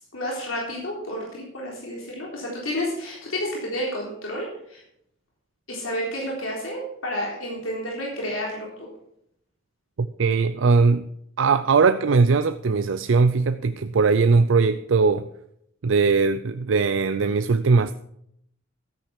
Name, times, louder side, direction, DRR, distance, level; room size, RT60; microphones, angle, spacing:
voice 1, 0.1-4.8 5.7-8.9, equal, 85° left, 3.7 m, -30 dB
voice 2, 10.0-11.1 11.4-15.3 15.8-17.9, right 4 dB, 70° right, 0.5 m, -20 dB
13.5 x 8.9 x 5.9 m
head